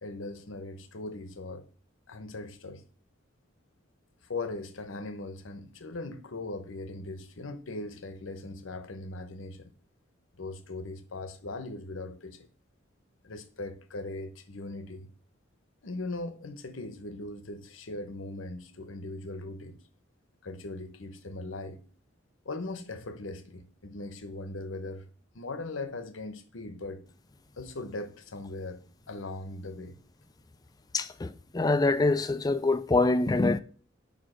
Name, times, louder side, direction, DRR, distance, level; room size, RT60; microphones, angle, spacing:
voice 1, 0.0-1.7 2.1-2.8 4.2-9.7 10.4-12.5 13.2-15.1 15.8-19.8 20.4-21.8 22.4-25.1 25.3-27.0 27.6-30.0, left 2 dB, 85° left, 0.9 m, -39 dB
voice 2, 30.9-33.6, left 3 dB, 20° left, 0.4 m, -25 dB
5.1 x 5.0 x 6.3 m
head